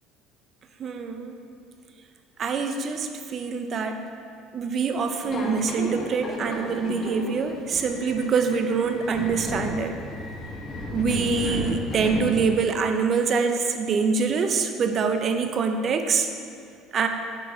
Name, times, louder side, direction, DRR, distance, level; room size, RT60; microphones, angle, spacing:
voice 1, 0.8-1.3 2.4-4.0 4.5-10.0 10.9-16.3 16.9-17.1, right 5 dB, 35° right, 6 dB, 0.6 m, -25 dB
Subway metro underground, 5.2-12.8, left 1 dB, 30° left, 1.1 m, -33 dB
8.0 x 4.7 x 5.5 m, 2.3 s
cardioid pair, 140°, 0 cm